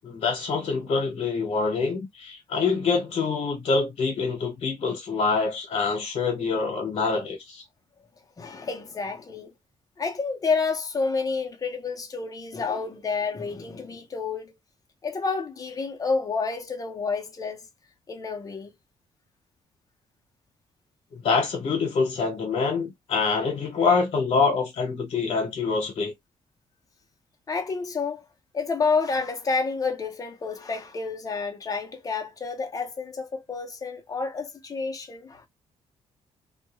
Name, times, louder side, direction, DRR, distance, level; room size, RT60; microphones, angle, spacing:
voice 1, 0.0-7.6 21.1-26.1, left 4 dB, 60° left, 1.0 m, -25 dB
voice 2, 8.4-9.5 10.0-14.5 15.0-17.7 18.1-18.7 27.5-28.2 28.5-35.5, left 4 dB, 30° left, 0.7 m, -29 dB
2.3 x 2.2 x 2.9 m
cardioid pair, 130°, 11 cm